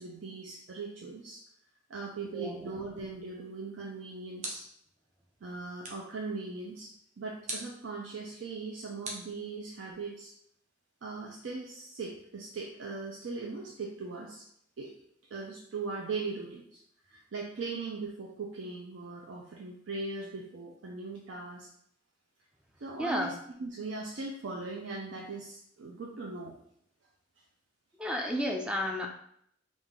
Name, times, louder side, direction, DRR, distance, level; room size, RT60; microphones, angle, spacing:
voice 1, 0.0-1.4 1.9-4.6 5.4-6.9 7.2-10.3 11.0-14.4 14.8-14.9 15.3-16.8 17.1-21.7 22.8-23.3 23.6-26.6, right 3 dB, 85° right, -1 dB, 0.5 m, -39 dB
sound 1, 3.7-4.9 5.8-6.2 7.5-7.8 9.0-9.9, right 2 dB, 40° right, 0.8 m, -42 dB
voice 2, 23.0-23.3 28.0-29.1, equal, 5° right, 2 dB, 0.3 m, -32 dB
3.5 x 2.5 x 3.7 m, 0.70 s
head